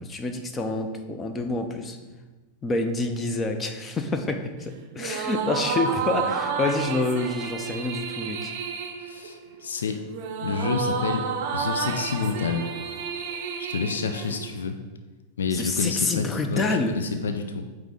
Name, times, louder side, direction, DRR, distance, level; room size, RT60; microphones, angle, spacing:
voice 1, 0.1-2.0 2.6-8.5 15.5-16.9, left 2 dB, 20° left, 7 dB, 0.6 m, -27 dB
sound 1, 4.9-14.7, right 6 dB, 50° right, 0.6 m, -31 dB
voice 2, 9.0-10.0 10.4-11.3 11.5-12.6 13.6-14.8 15.4-17.6, left 5 dB, 65° left, 7 dB, 0.4 m, -28 dB
8.4 x 3.2 x 3.6 m, 1.2 s
figure-of-eight pair, 90°, 0 cm